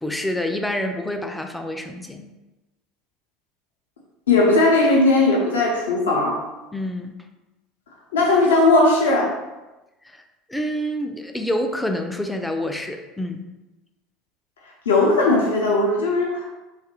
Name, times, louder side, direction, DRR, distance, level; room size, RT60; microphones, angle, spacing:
voice 1, 0.0-2.3 6.7-7.1 10.0-10.2 10.5-13.5, left 1 dB, 5° left, 5 dB, 0.3 m, -27 dB
voice 2, 4.3-6.4 8.1-9.4 14.9-16.5, left 2 dB, 80° left, -2 dB, 0.5 m, -18 dB
2.8 x 2.4 x 2.9 m, 1.0 s
figure-of-eight pair, 70°, 0 cm